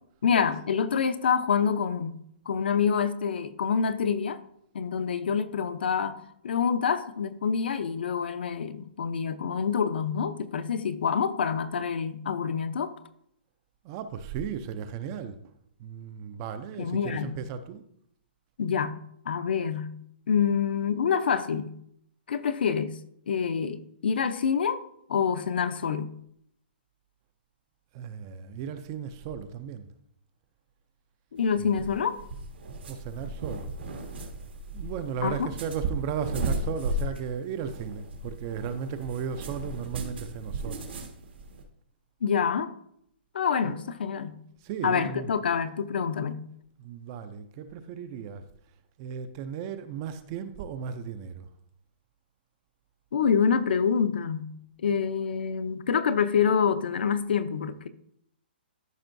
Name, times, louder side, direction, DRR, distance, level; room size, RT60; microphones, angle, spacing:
voice 1, 0.2-2.1 2.5-4.4 4.7-6.2 6.4-12.9 16.8-17.3 18.6-19.0 19.3-19.9 20.3-21.7 22.3-23.0 23.3-24.8 25.1-26.1 31.3-32.2 35.2-35.3 42.2-42.7 43.3-44.4 44.8-46.4 53.1-54.5 54.8-57.9, left 6 dB, 65° left, 0.6 m, -26 dB
voice 2, 13.8-15.5 15.8-17.8 27.9-29.9 31.6-31.9 32.9-33.7 34.7-40.8 43.6-43.8 44.6-45.3 46.8-48.5 49.0-51.5, right 7 dB, 20° right, 0.3 m, -35 dB
sound 1, 31.4-41.6, right 1 dB, 85° right, 1.6 m, -36 dB
13.5 x 5.3 x 2.6 m
hypercardioid pair, 175°, 6 cm